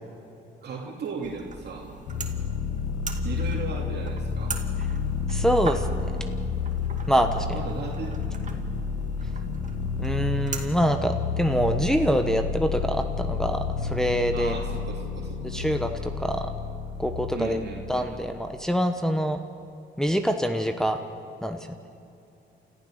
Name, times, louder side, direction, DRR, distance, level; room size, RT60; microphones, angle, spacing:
voice 1, 0.6-1.9 3.2-4.6 7.5-8.2 14.3-15.7 17.3-18.1, right 4 dB, 55° right, -1 dB, 2.9 m, -36 dB
sound 1, 1.2-10.6, right 4 dB, 40° right, 2.3 m, -40 dB
sound 2, 2.1-18.8, left 5 dB, 80° left, 1.7 m, -30 dB
voice 2, 5.3-6.1 7.1-7.6 10.0-14.6 15.4-16.5 17.0-17.6 17.9-19.4 20.0-21.0 21.4-21.6, equal, 5° left, 5 dB, 1.1 m, -25 dB
28.5 x 14.5 x 6.7 m, 2.9 s
cardioid pair, 90°, 20 cm